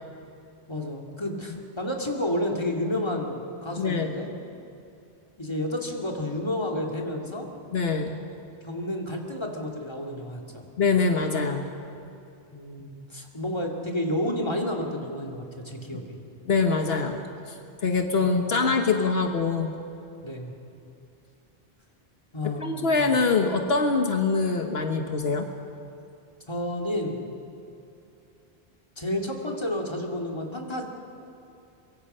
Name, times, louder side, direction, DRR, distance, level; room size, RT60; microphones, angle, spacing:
voice 1, 0.7-4.3 5.4-7.5 8.6-10.6 12.5-16.2 18.2-18.6 20.2-20.5 22.3-23.1 26.5-27.3 29.0-30.8, left 1 dB, 25° left, 1 dB, 2.5 m, -31 dB
voice 2, 3.8-4.2 7.7-8.2 10.8-11.7 16.5-17.2 17.8-19.7 22.6-25.5, left 4 dB, 75° left, 5 dB, 1.4 m, -24 dB
24.0 x 23.0 x 5.6 m, 2.6 s
omnidirectional pair, 1.0 m